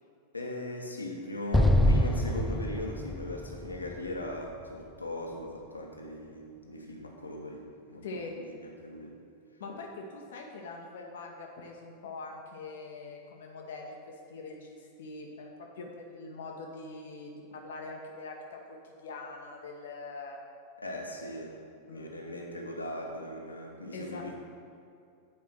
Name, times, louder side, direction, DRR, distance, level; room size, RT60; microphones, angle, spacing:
voice 1, 0.3-9.1 20.8-21.5 21.9-24.3, left 1 dB, 80° left, 0 dB, 1.1 m, -39 dB
Explosion, 1.5-4.8, left 1 dB, 5° left, 0.4 m, -26 dB
voice 2, 8.0-8.3 9.6-15.5 15.8-20.4 21.9-22.1 23.9-24.2, left 3 dB, 60° left, 1 dB, 0.8 m, -43 dB
8.6 x 4.6 x 6.0 m, 2.5 s
figure-of-eight pair, 90°, 0 cm